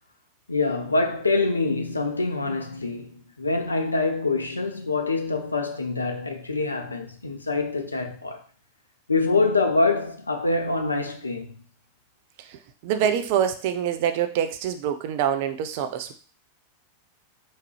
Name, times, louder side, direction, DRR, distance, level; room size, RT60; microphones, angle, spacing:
voice 1, 0.5-8.4 9.1-11.5, left 3 dB, 80° left, 0.5 m, -25 dB
voice 2, 12.4-16.1, right 9 dB, 50° right, 0.4 m, -25 dB
3.6 x 2.8 x 3.1 m
figure-of-eight pair, 90°, 0 cm